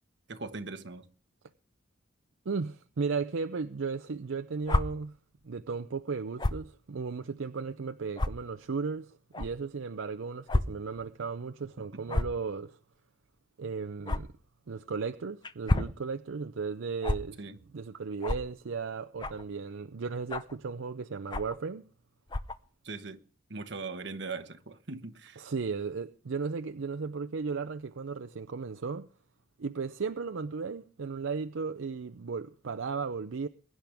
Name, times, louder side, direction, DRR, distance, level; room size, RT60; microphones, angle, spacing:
voice 1, 0.3-1.0 17.4-17.6 22.8-23.2 23.5-25.4, right 4 dB, 55° right, 1.2 m, -40 dB
voice 2, 2.5-5.1 5.4-12.8 13.6-14.3 14.7-17.4 17.7-21.9 25.4-29.1 29.6-33.5, right 5 dB, 75° right, 0.5 m, -35 dB
sound 1, 4.6-4.8 6.4-6.6 7.4-7.5 8.2-8.3 9.3-9.5 10.5-10.6 11.0-11.1 12.1-12.4 14.1-14.2 15.4-15.9 17.0-17.2 18.2-18.4 19.2-19.5 20.3-20.6 21.3-21.6 22.3-22.6, left 2 dB, 20° left, 0.5 m, -28 dB
22.0 x 10.5 x 3.5 m
head